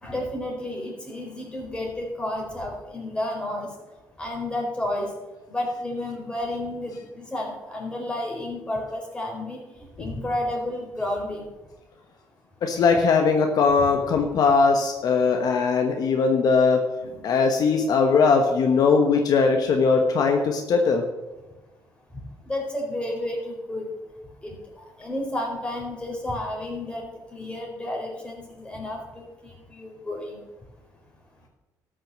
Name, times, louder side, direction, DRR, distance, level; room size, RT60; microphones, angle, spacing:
voice 1, 0.0-3.7 4.2-5.1 5.5-9.6 10.0-11.5 17.0-17.2 22.5-23.9 24.4-24.5 25.0-27.1 27.3-30.4, left 1 dB, 15° left, -1 dB, 4.3 m, -31 dB
voice 2, 12.6-16.8 17.2-21.0, left 4 dB, 60° left, 4 dB, 1.3 m, -20 dB
13.0 x 6.4 x 7.5 m, 1.1 s
cardioid pair, 110°, 7 cm